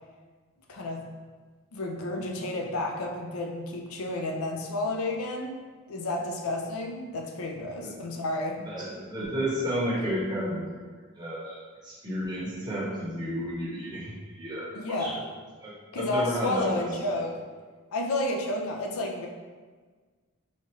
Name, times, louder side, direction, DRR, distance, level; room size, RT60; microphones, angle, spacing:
voice 1, 0.7-1.0 1.7-5.6 5.9-8.6 14.7-15.2 15.9-17.4 17.9-19.3, left 2 dB, 75° left, 1 dB, 0.5 m, -31 dB
voice 2, 8.6-10.8 11.2-15.1 15.6-17.0, equal, 20° right, -7 dB, 0.8 m, -32 dB
4.3 x 2.3 x 2.9 m, 1.4 s
head